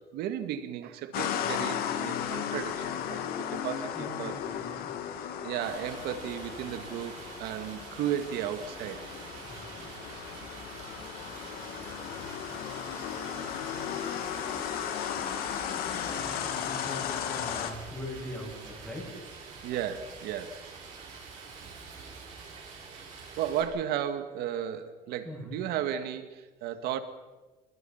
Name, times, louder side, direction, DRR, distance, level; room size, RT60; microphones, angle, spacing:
voice 1, 0.0-4.4 5.4-9.1 19.6-20.7 23.4-27.0, right 10 dB, 70° right, 9 dB, 2.1 m, -34 dB
sound 1, 1.1-17.7, left 9 dB, 65° left, 2.5 m, -35 dB
voice 2, 3.9-4.9 9.4-9.6 16.1-19.1 25.2-25.6, left 1 dB, 5° left, -2 dB, 7.8 m, -41 dB
Stream, 5.6-23.6, right 4 dB, 45° right, 7.1 m, -46 dB
29.5 x 22.0 x 5.9 m, 1.2 s
cardioid pair, 175°, 17 cm